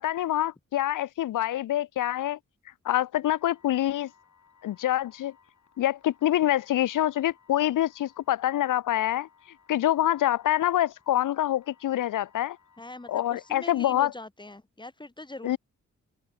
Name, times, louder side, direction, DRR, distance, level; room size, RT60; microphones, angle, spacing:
voice 1, 0.0-2.4 2.8-4.1 4.6-5.3 5.8-9.3 9.7-12.6 13.1-14.1 15.4-15.6, left 13 dB, 80° left, 0.5 m, -26 dB
sound 1, 3.3-13.8, left 6 dB, 65° left, 3.3 m, -61 dB
voice 2, 12.8-15.6, left 2 dB, 15° left, 1.2 m, -42 dB
open air
cardioid pair, 50°, 31 cm